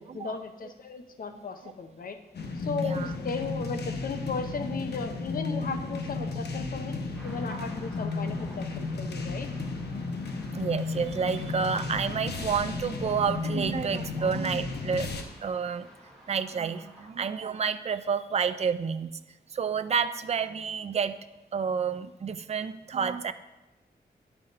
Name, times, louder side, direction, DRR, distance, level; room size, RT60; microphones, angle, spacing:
voice 1, 0.0-2.2 2.6-6.9 7.2-9.5, left 4 dB, 60° left, 7 dB, 0.7 m, -36 dB
voice 2, 1.3-1.7 2.8-3.2 5.7-5.8 7.5-7.8 10.5-15.1 15.4-15.9 16.3-19.1 19.5-21.3 21.5-23.3, right 6 dB, 40° right, 12 dB, 0.4 m, -30 dB
sound 1, 2.3-15.2, left 3 dB, 85° left, 0.8 m, -33 dB
sound 2, 7.1-17.1, right 1 dB, 5° left, 1.9 m, -52 dB
10.0 x 5.7 x 4.0 m, 1.0 s
wide cardioid pair, 175°, 17 cm